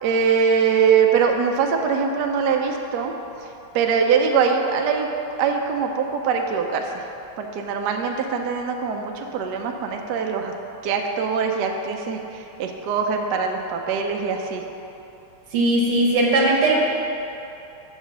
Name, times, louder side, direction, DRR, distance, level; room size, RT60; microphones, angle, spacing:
voice 1, 0.0-3.1 3.7-5.1 5.4-6.9 7.4-10.5 10.8-14.6, right 6 dB, 75° right, 3 dB, 0.9 m, -22 dB
voice 2, 15.5-16.7, right 2 dB, 90° right, -1 dB, 2.1 m, -18 dB
6.3 x 5.0 x 6.6 m, 2.8 s
omnidirectional pair, 2.4 m